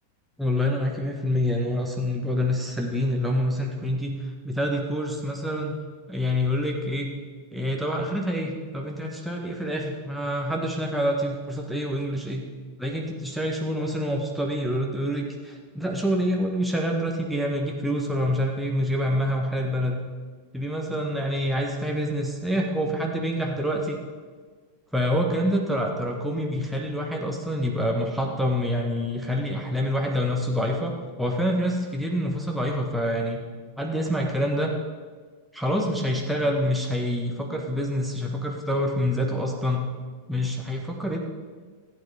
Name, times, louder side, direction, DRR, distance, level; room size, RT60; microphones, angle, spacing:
voice 1, 0.4-5.8 6.1-7.1 7.5-12.4 12.8-20.0 20.5-24.0 24.9-30.9 31.2-33.4 33.8-34.7 35.5-39.9 40.3-41.2, equal, ahead, -1 dB, 1.4 m, -26 dB
15.0 x 8.9 x 4.9 m, 1.5 s
figure-of-eight pair, 90°, 0 cm